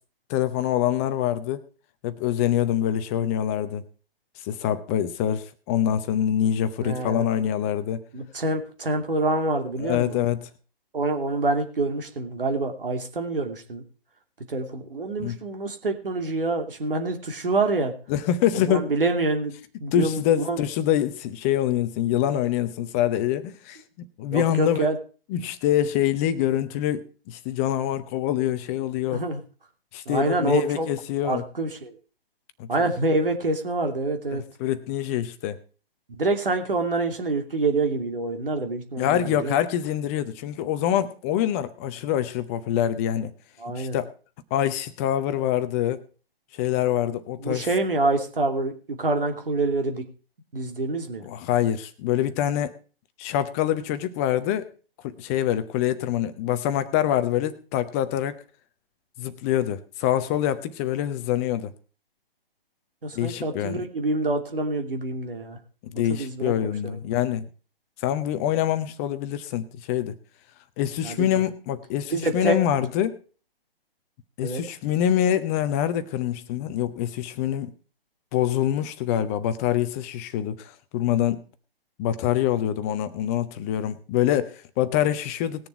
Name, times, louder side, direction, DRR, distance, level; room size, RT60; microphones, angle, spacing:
voice 1, 0.3-1.6 2.0-3.8 4.4-8.0 9.8-10.5 15.2-15.4 18.1-18.9 19.9-24.9 25.3-29.2 29.9-31.4 32.6-32.7 34.3-35.6 39.0-43.3 43.8-44.1 44.5-46.0 46.6-47.7 51.2-52.7 53.2-54.7 55.0-58.4 59.2-61.7 63.1-63.8 65.8-67.4 68.0-70.1 70.8-73.2 74.4-77.7 78.3-81.4 82.0-85.7, left 11 dB, 15° left, 0.6 m, -25 dB
voice 2, 6.8-7.2 8.1-10.2 10.9-13.8 14.5-17.9 18.6-20.6 24.3-25.0 29.1-29.4 30.1-30.9 31.2-32.0 32.7-34.4 36.1-39.5 43.6-44.0 47.4-50.1 50.5-51.3 63.0-65.6 66.1-66.5 66.8-67.0 71.0-71.3 72.1-72.9 74.4-74.6, right 2 dB, 65° right, 2.8 m, -26 dB
19.5 x 6.9 x 4.6 m
figure-of-eight pair, 130°, 30 cm